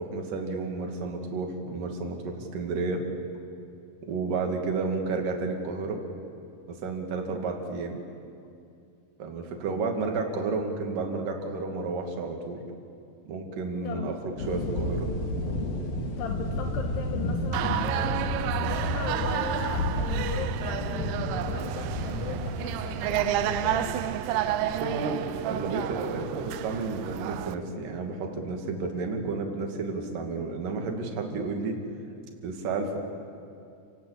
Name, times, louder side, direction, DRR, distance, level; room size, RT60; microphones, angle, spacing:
voice 1, 0.0-3.0 4.0-6.0 6.7-8.0 9.2-12.6 13.3-15.1 24.6-31.8 32.4-33.0, right 3 dB, 50° right, 2 dB, 3.7 m, -31 dB
sound 1, 14.4-23.9, left 1 dB, 60° left, 3.9 m, -31 dB
voice 2, 16.2-24.0, left 6 dB, 75° left, 4 dB, 2.9 m, -38 dB
sound 2, 17.5-27.6, right 12 dB, 80° right, 3.1 m, -31 dB
30.0 x 18.5 x 8.3 m, 2.5 s
omnidirectional pair, 5.3 m